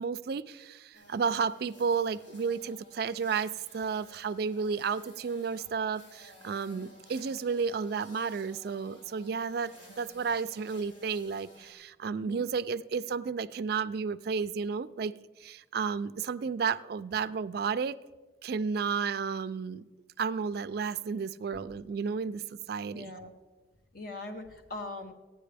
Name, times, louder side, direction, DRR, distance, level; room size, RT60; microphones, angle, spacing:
voice 1, 0.0-18.0 18.4-19.9 20.2-23.1, right 5 dB, 50° right, 14 dB, 0.3 m, -32 dB
sound 1, 0.9-11.7, equal, 75° left, 4.4 m, -55 dB
voice 2, 12.1-12.4 21.5-21.6 22.9-23.3 23.9-25.1, left 2 dB, 45° left, 4 dB, 1.0 m, -42 dB
14.5 x 10.0 x 3.4 m, 1.2 s
head